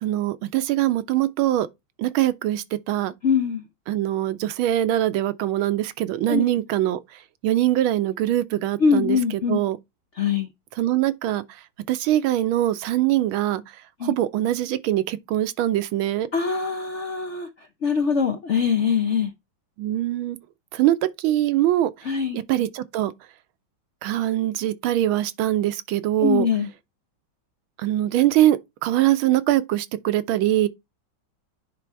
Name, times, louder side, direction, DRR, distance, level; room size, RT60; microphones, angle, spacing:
voice 1, 0.0-1.7 2.0-3.1 3.9-7.0 7.4-9.2 9.5-9.8 10.8-11.4 11.9-13.6 14.0-16.3 19.8-20.4 20.7-21.9 22.3-23.1 24.0-26.5 27.8-30.7, right 13 dB, 90° right, 1.5 m, -22 dB
voice 2, 3.2-3.6 6.3-6.5 8.8-9.6 10.1-10.5 14.0-14.1 16.3-19.3 22.0-22.4 26.2-26.7, left 6 dB, 70° left, 0.6 m, -23 dB
9.7 x 3.4 x 4.5 m
omnidirectional pair, 2.2 m